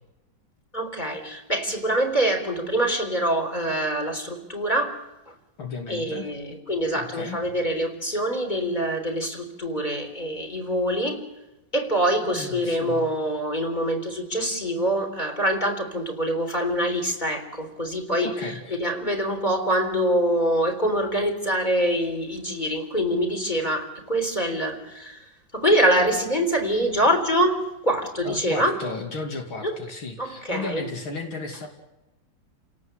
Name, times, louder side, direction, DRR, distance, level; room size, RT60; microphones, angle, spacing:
voice 1, 0.7-5.0 5.3-5.4 5.9-11.2 11.7-18.3 18.7-28.8 29.6-29.8 30.2-30.8, right 1 dB, 20° left, 5 dB, 4.1 m, -25 dB
voice 2, 5.6-6.3 6.9-7.4 12.2-13.1 18.2-18.8 28.2-31.7, left 3 dB, 85° left, 2 dB, 3.5 m, -34 dB
30.0 x 18.0 x 8.1 m, 1.0 s
omnidirectional pair, 2.2 m